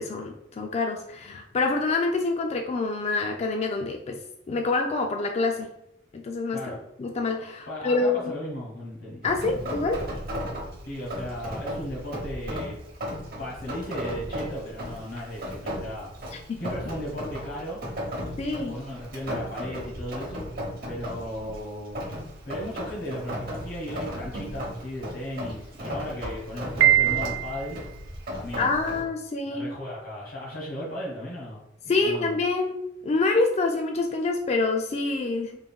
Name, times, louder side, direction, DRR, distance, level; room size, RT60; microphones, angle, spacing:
voice 1, 0.0-4.2 4.5-5.7 6.1-6.6 7.0-8.2 9.2-10.0 16.5-16.6 18.4-18.8 28.6-29.7 31.9-32.8 33.0-35.6, left 3 dB, 35° left, 3 dB, 0.3 m, -26 dB
voice 2, 7.7-9.2 9.5-9.7 10.9-12.8 13.4-16.1 16.6-17.8 18.7-20.6 20.8-22.0 22.4-27.8 28.3-29.1 29.5-31.6 32.0-32.4, equal, 75° left, -4 dB, 1.1 m, -36 dB
Rain, 9.2-29.0, equal, 50° right, 0.8 m, -36 dB
Piano, 26.8-27.8, right 13 dB, 75° right, 0.3 m, -21 dB
3.6 x 2.2 x 3.6 m, 0.82 s
head